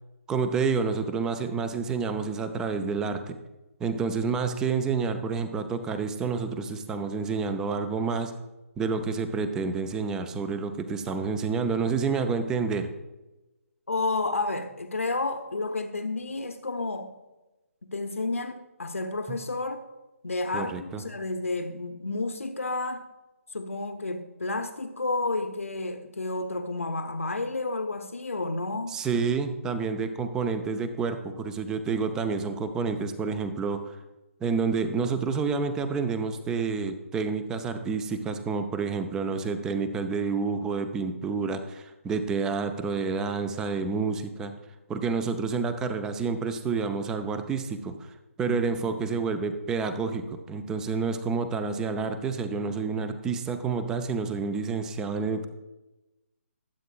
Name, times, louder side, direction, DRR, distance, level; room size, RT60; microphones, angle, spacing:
voice 1, 0.3-3.4 3.8-8.4 8.8-12.9 20.5-21.0 28.9-34.0 34.4-44.5 44.9-47.9 48.4-55.5, right 5 dB, 10° right, 0.5 m, -29 dB
voice 2, 13.9-17.2 17.8-19.9 20.2-23.1 23.5-28.9 48.5-48.6, left 2 dB, 70° left, 0.9 m, -31 dB
20.5 x 8.2 x 2.4 m
figure-of-eight pair, 140°, 8 cm